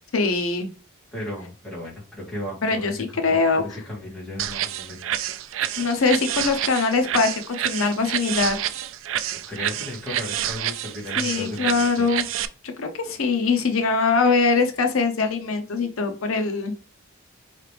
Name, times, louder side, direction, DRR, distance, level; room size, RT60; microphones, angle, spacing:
voice 1, 0.1-0.7 2.6-3.8 5.8-8.6 11.2-12.3 12.6-16.7, left 4 dB, 80° left, 6 dB, 0.7 m, -22 dB
voice 2, 1.1-5.2 9.3-12.2, left 1 dB, ahead, -7 dB, 2.3 m, -36 dB
sound 1, 4.4-12.5, right 11 dB, 70° right, 0.4 m, -28 dB
4.8 x 3.2 x 3.3 m, 0.34 s
head